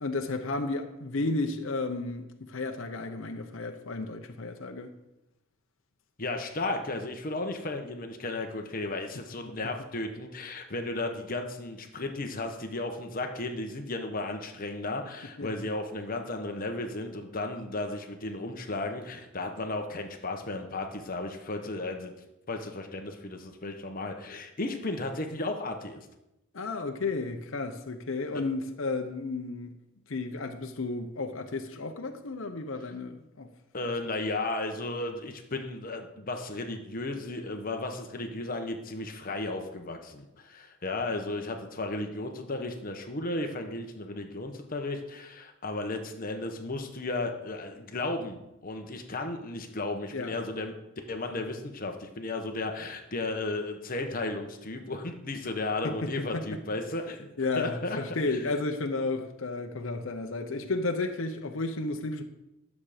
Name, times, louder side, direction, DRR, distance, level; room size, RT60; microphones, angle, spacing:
voice 1, 0.0-4.9 9.5-9.6 15.4-15.6 26.5-29.7 30.1-33.5 50.1-50.4 55.8-56.6 57.4-62.2, left 3 dB, 65° left, 0.8 m, -33 dB
voice 2, 6.2-22.1 22.5-26.1 33.7-50.7 51.1-57.3 57.6-58.0 58.3-58.4, left 2 dB, 40° left, 1.0 m, -34 dB
11.5 x 7.2 x 5.0 m
head